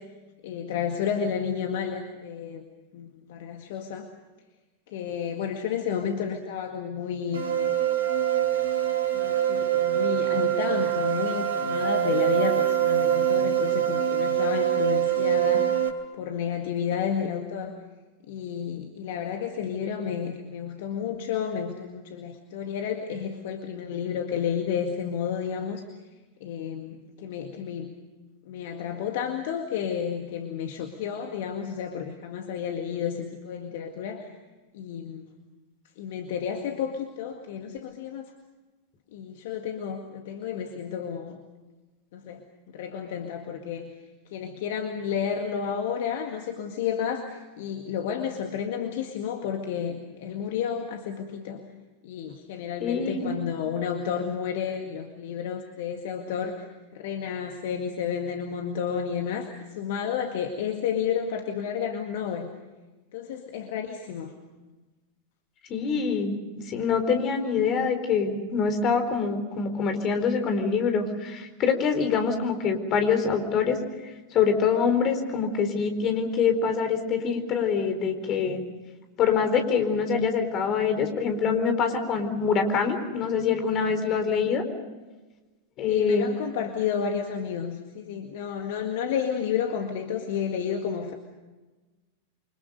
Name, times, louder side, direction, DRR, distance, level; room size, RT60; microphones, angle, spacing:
voice 1, 0.4-2.6 2.9-4.1 4.9-7.5 9.1-15.7 16.2-17.8 18.3-25.8 26.4-27.9 28.5-34.3 34.7-35.2 36.0-38.3 39.1-41.4 42.1-42.4 42.7-44.0 44.3-51.6 52.0-56.7 56.9-62.5 63.1-64.3 85.9-91.2, left 7 dB, 55° left, 4 dB, 2.0 m, -31 dB
sound 1, 7.3-15.9, right 11 dB, 65° right, 3.0 m, -24 dB
voice 2, 52.8-53.3 65.7-66.4 66.6-73.8 74.3-78.6 79.2-84.6 85.8-86.3, left 6 dB, 35° left, 6 dB, 4.2 m, -25 dB
29.0 x 25.0 x 5.3 m, 1.2 s
figure-of-eight pair, 90°, 0 cm